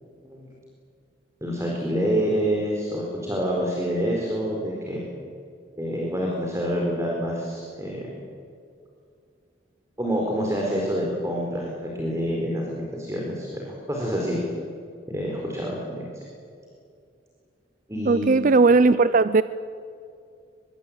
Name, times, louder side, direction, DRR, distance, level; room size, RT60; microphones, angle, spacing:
voice 1, 1.4-5.0 5.8-8.0 10.0-14.4 15.1-16.0 17.9-18.3, equal, 15° right, -1 dB, 4.3 m, -27 dB
voice 2, 18.1-19.4, right 3 dB, 45° right, 14 dB, 0.5 m, -17 dB
24.5 x 22.5 x 8.8 m, 2.4 s
head